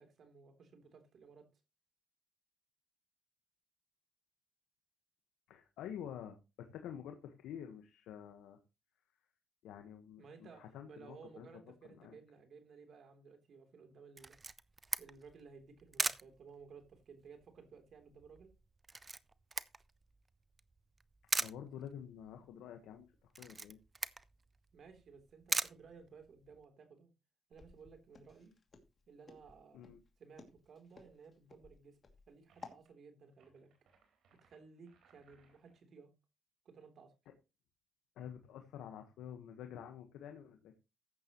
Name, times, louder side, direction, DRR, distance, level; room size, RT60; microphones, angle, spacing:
voice 1, 0.0-1.6 10.2-14.4 15.0-18.5 24.7-27.1 27.5-28.5 29.1-29.8 30.2-32.0 32.3-33.7 34.4-36.1 36.6-37.1, right 5 dB, 60° right, 3.3 m, -57 dB
voice 2, 5.5-8.6 9.6-11.5 11.9-12.2 21.4-23.8 29.7-30.0 38.1-40.7, left 9 dB, 90° left, 1.3 m, -49 dB
Camera, 14.2-26.6, right 3 dB, 25° right, 0.7 m, -41 dB
Walk footsteps, 27.5-32.8, left 4 dB, 40° left, 2.5 m, -57 dB
sound 1, 32.5-32.9 33.3-35.8, right 5 dB, 75° right, 4.4 m, -71 dB
14.0 x 9.7 x 3.1 m
cardioid pair, 90°, 0 cm